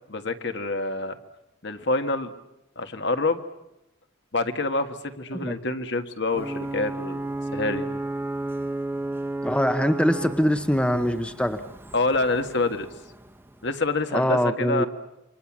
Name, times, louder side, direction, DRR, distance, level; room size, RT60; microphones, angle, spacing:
voice 1, 0.1-1.2 1.6-2.3 2.7-3.4 4.3-8.0 11.9-12.9 13.6-14.9, left 2 dB, 60° left, 7 dB, 1.7 m, -27 dB
Ocean / Boat Water vehicle / Alarm, 6.3-13.9, right 2 dB, 10° right, 1.2 m, -33 dB
voice 2, 9.4-11.6 14.1-14.9, equal, 5° left, 9 dB, 0.9 m, -23 dB
28.5 x 25.0 x 7.4 m, 0.92 s
head